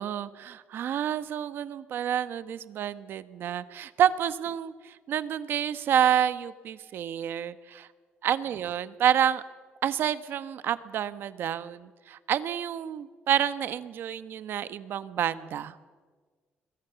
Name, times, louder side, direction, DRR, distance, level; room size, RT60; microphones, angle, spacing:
voice 1, 0.0-7.9 8.2-9.4 9.8-15.7, right 10 dB, 65° right, 14 dB, 1.2 m, -29 dB
26.5 x 21.5 x 7.0 m, 1.4 s
cardioid pair, 140°, 4 cm